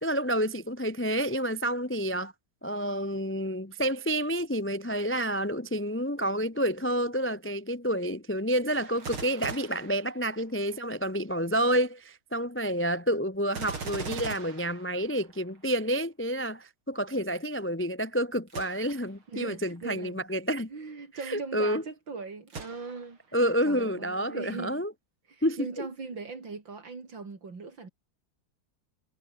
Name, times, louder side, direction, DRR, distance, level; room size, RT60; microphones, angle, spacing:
voice 1, 0.0-2.3 2.6-20.7 21.2-21.8 23.3-24.9 25.4-25.9, equal, 10° left, 0.6 m, -29 dB
Gunshot gunfire, 8.7-10.7 13.5-15.6 18.5-19.1 19.8-19.9 22.5-23.3 23.8-23.9, right 4 dB, 80° right, 4.8 m, -41 dB
voice 2, 19.3-20.2 20.7-24.8 25.3-27.9, right 4 dB, 60° right, 4.3 m, -40 dB
omnidirectional pair, 2.3 m